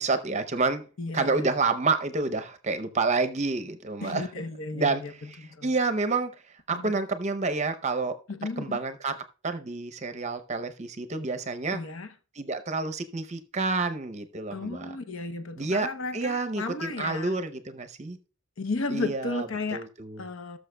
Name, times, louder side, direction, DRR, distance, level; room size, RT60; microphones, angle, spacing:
voice 1, 0.0-0.9 1.1-4.3 4.7-5.0 5.6-6.3 6.7-8.2 8.6-9.2 9.4-11.8 12.4-14.9 15.6-18.2 18.9-19.5 19.7-20.2, right 3 dB, 35° right, 0.6 m, -28 dB
voice 2, 1.0-1.5 4.0-5.7 6.7-6.9 8.3-8.8 11.7-12.1 14.5-17.4 18.6-19.9 20.2-20.6, left 3 dB, 70° left, 0.7 m, -34 dB
18.5 x 6.4 x 2.2 m
head